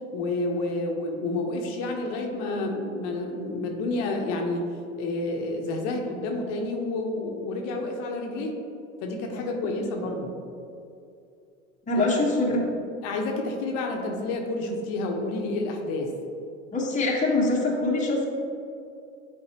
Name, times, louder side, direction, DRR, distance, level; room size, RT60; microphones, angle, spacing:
voice 1, 0.1-4.7 5.0-8.6 9.0-10.3 11.9-12.0 13.0-16.1, left 2 dB, 60° left, 2 dB, 1.0 m, -29 dB
voice 2, 11.9-12.6 16.7-18.3, left 2 dB, 20° left, -3 dB, 1.2 m, -24 dB
8.6 x 4.1 x 2.9 m, 2.5 s
hypercardioid pair, 80°, 38 cm